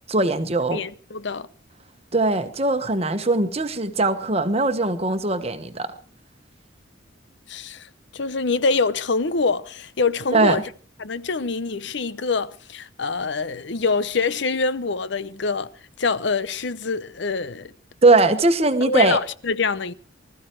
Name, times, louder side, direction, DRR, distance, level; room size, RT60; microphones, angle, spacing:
voice 1, 0.1-0.8 2.1-5.9 10.3-10.6 18.0-19.2, right 2 dB, 30° right, 1.2 m, -20 dB
voice 2, 0.7-1.5 7.5-10.6 11.0-15.7 16.0-17.7 18.8-19.9, left 4 dB, 65° left, 0.7 m, -25 dB
20.0 x 14.0 x 4.6 m
head